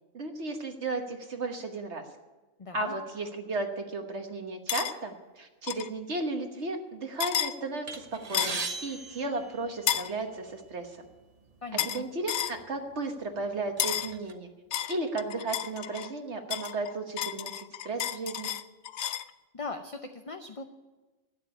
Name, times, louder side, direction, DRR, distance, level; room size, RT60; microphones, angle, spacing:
voice 1, 0.1-2.0 2.7-11.0 11.8-14.5 14.9-18.5, right 2 dB, 60° right, 4 dB, 1.5 m, -34 dB
voice 2, 2.6-2.9 11.6-12.0 19.5-20.6, left 3 dB, 35° left, 6 dB, 0.6 m, -39 dB
sound 1, 4.7-4.9 5.7-5.9 7.2-7.5 8.3-8.7 9.9-10.1 11.8-12.0 12.3-12.6 13.8-14.1 14.7-16.1 16.5-19.3, left 11 dB, 65° left, 0.8 m, -31 dB
sound 2, 7.9-10.2 11.0-11.2 11.5-11.7 12.5-12.7 13.2-14.3, right 4 dB, 35° right, 1.0 m, -39 dB
12.0 x 9.2 x 9.8 m, 1.2 s
omnidirectional pair, 1.3 m